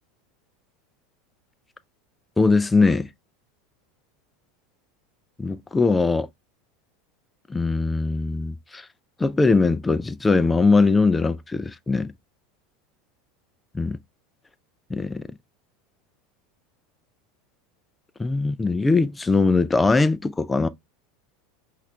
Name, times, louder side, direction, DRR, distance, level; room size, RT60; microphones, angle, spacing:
voice 1, 2.4-3.1 5.4-6.3 7.5-8.9 9.2-12.1 13.8-14.0 14.9-15.2 18.2-20.7, left 3 dB, 15° left, 0.3 m, -21 dB
5.6 x 2.4 x 3.2 m
hypercardioid pair, 80°, 0 cm